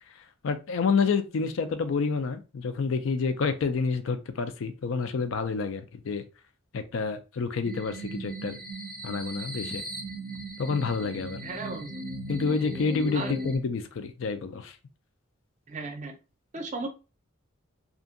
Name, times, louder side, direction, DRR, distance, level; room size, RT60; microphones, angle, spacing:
voice 1, 0.1-6.2 6.7-8.6 9.0-9.8 10.6-11.4 12.3-14.8, left 5 dB, 70° left, 10 dB, 0.4 m, -29 dB
sound 1, 7.6-13.6, right 1 dB, 5° left, 0.6 m, -37 dB
voice 2, 11.4-11.9 13.1-13.3 15.7-16.2 16.5-16.9, right 3 dB, 35° right, 5 dB, 0.5 m, -35 dB
2.6 x 2.5 x 2.5 m, 0.31 s
head